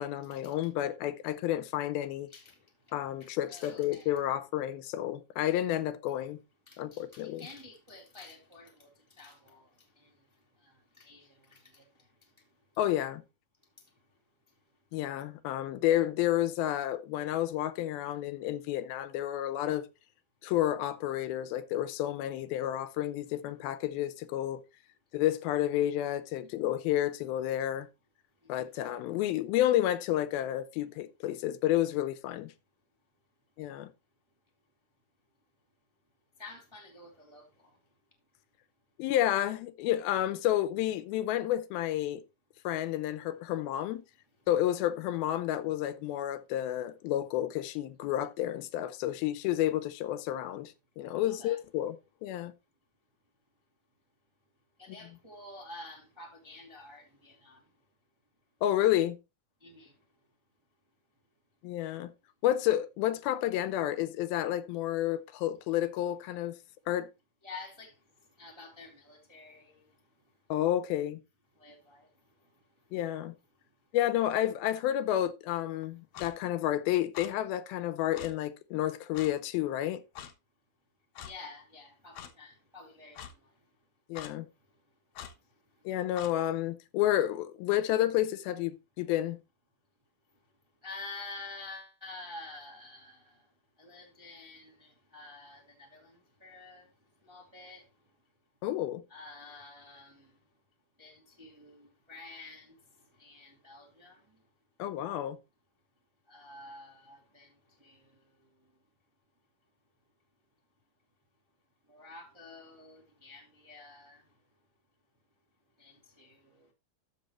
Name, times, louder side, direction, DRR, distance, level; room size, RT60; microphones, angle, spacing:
voice 1, 0.0-2.3 2.9-6.4 6.8-7.5 12.8-13.2 14.9-19.9 20.4-24.6 25.1-27.9 28.5-32.5 33.6-33.9 39.0-42.2 42.6-44.0 44.5-52.0 52.2-52.5 54.9-55.2 58.6-59.2 61.6-62.1 62.4-66.6 66.9-67.1 70.5-71.2 72.9-73.3 73.9-80.0 84.1-84.5 85.9-89.4 98.6-99.0 104.8-105.4, left 12 dB, 85° left, 2.5 m, -30 dB
voice 2, 3.2-4.1 6.7-10.1 10.6-12.1 36.4-37.8 51.4-51.6 54.8-57.6 59.6-59.9 67.4-67.9 68.4-69.9 71.6-72.1 81.2-83.4 90.8-93.4 93.8-96.9 97.2-97.8 99.1-100.4 101.0-102.7 103.2-104.2 106.3-108.2 111.9-114.2 115.8-116.7, left 3 dB, 10° right, 1.4 m, -49 dB
Clock, 76.1-76.3 77.1-77.3 78.1-78.3 79.1-79.3 80.2-80.3 81.2-81.3 82.1-82.3 83.1-83.3 84.1-84.3 85.1-85.3 86.2-86.3, left 9 dB, 65° left, 1.8 m, -44 dB
13.0 x 6.0 x 3.0 m
omnidirectional pair, 4.3 m